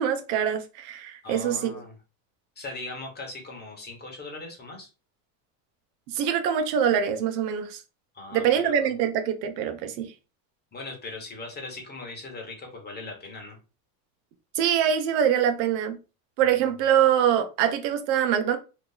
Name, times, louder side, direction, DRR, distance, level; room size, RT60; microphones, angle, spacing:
voice 1, 0.0-1.8 6.1-7.8 8.3-10.1 14.6-16.0 16.4-18.6, right 9 dB, 85° right, 0.8 m, -24 dB
voice 2, 1.2-1.9 2.6-4.9 8.1-8.9 10.7-13.6 16.4-16.6, left 3 dB, 20° left, 1.1 m, -39 dB
2.8 x 2.3 x 3.8 m
supercardioid pair, 130°, 48 cm